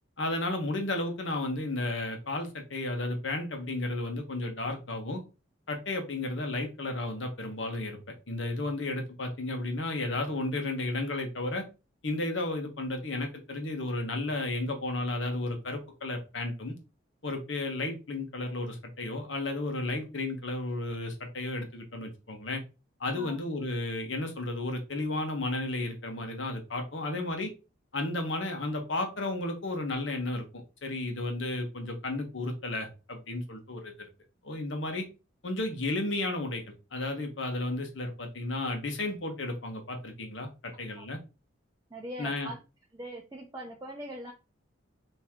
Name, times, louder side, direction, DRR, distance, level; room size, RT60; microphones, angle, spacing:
voice 1, 0.2-5.2 5.7-8.0 8.3-11.6 12.0-16.7 17.2-22.6 23.0-27.5 27.9-30.4 30.8-33.9 34.4-35.0 35.4-36.6 36.9-41.2 42.2-42.5, left 2 dB, 70° left, 4 dB, 1.2 m, -33 dB
voice 2, 41.9-42.6 42.9-44.3, right 1 dB, 20° right, -1 dB, 0.6 m, -41 dB
4.5 x 3.0 x 3.6 m, 0.30 s
head